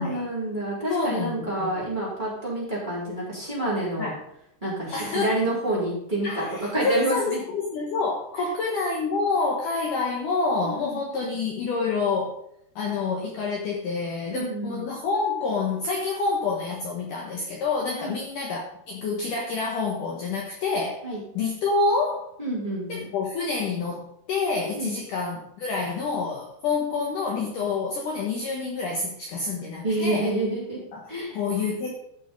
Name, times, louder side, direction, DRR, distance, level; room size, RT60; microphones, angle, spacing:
voice 1, 0.0-4.1 4.6-6.4 6.7-7.4 8.4-8.5 10.6-11.0 14.3-14.9 18.0-18.2 21.0-21.2 22.4-23.1 24.7-25.0 29.8-30.8 31.1-31.4, right 1 dB, 10° right, -6 dB, 3.4 m, -28 dB
voice 2, 0.9-1.9 4.0-4.2 4.9-5.4 6.2-12.4 12.8-18.6 18.9-21.0 21.3-22.3 22.9-30.3 30.9-31.9, left 4 dB, 60° left, -2 dB, 2.4 m, -27 dB
13.0 x 6.1 x 5.4 m, 0.73 s
omnidirectional pair, 4.9 m